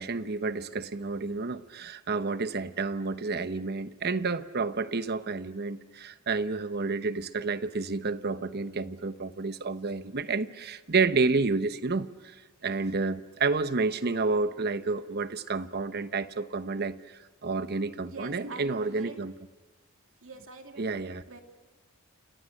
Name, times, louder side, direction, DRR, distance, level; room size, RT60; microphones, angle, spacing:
voice 1, 0.0-12.4 12.6-19.3 20.8-21.2, right 4 dB, 45° right, 12 dB, 1.0 m, -30 dB
voice 2, 18.1-19.2 20.2-21.4, right 3 dB, 65° right, 4 dB, 2.6 m, -45 dB
29.0 x 28.5 x 6.6 m, 1.3 s
head